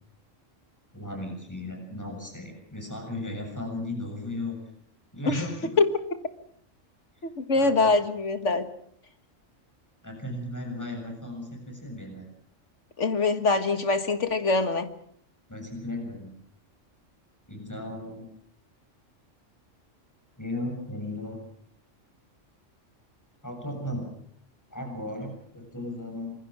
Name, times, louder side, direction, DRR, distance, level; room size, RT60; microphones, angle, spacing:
voice 1, 0.9-4.6 5.1-5.8 7.5-8.0 10.0-12.3 15.5-16.3 17.5-18.3 20.4-21.4 23.4-24.1 24.7-26.4, left 1 dB, 15° left, 3 dB, 7.2 m, -36 dB
voice 2, 7.2-8.7 13.0-14.9, left 3 dB, 70° left, 8 dB, 2.1 m, -24 dB
26.5 x 23.0 x 6.2 m, 0.64 s
omnidirectional pair, 1.3 m